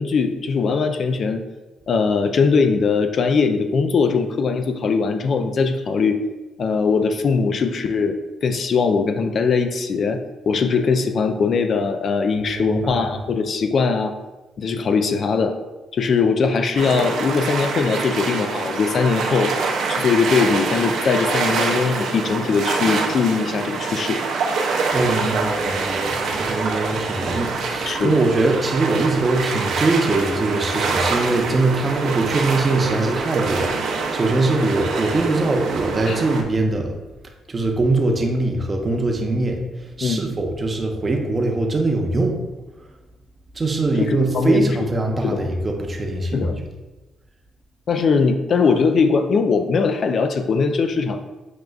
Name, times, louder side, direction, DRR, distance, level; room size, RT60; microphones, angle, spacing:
voice 1, 0.0-1.4 1.9-6.2 6.6-14.1 14.6-15.5 15.9-19.5 19.9-24.2 27.9-28.1 36.1-36.2 40.0-40.2 44.0-44.7 45.2-45.4 46.3-46.6 47.9-51.2, left 5 dB, 55° left, 7 dB, 0.3 m, -20 dB
voice 2, 12.3-13.1 24.9-36.9 37.5-39.6 40.0-42.4 43.6-46.6, right 2 dB, 30° right, 2 dB, 0.6 m, -22 dB
sound 1, 16.8-36.4, right 4 dB, 75° right, 0.5 m, -25 dB
6.3 x 2.3 x 2.3 m, 1.1 s
cardioid pair, 90°, 0 cm